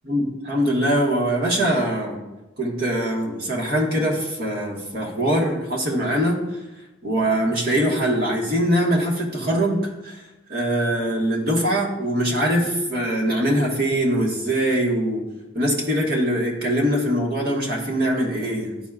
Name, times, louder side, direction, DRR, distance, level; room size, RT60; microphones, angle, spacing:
voice 1, 0.1-2.2 2.6-6.4 7.0-10.2 10.5-15.2 15.5-18.7, equal, 50° right, -2 dB, 1.4 m, -22 dB
11.5 x 4.1 x 2.4 m, 1.1 s
head